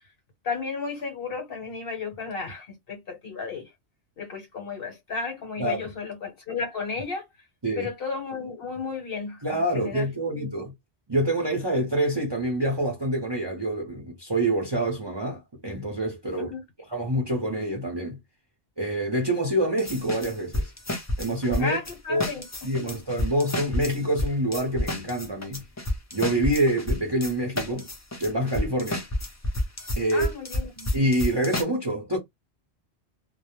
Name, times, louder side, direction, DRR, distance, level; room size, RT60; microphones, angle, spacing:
voice 1, 0.4-3.7 4.2-7.2 7.8-10.5 16.4-16.6 21.6-22.8 30.1-30.9, left 4 dB, 60° left, 1.0 m, -33 dB
voice 2, 5.6-5.9 7.6-7.9 9.4-10.7 11.1-16.5 16.9-18.2 18.8-20.7 21.2-21.8 22.1-22.3 22.6-25.6 26.1-27.9 28.2-29.1 30.0-30.3 30.9-32.2, right 1 dB, 30° right, 0.6 m, -26 dB
sound 1, 19.8-21.9 22.2-31.6, left 1 dB, 25° left, 0.4 m, -30 dB
2.2 x 2.0 x 2.9 m
omnidirectional pair, 1.2 m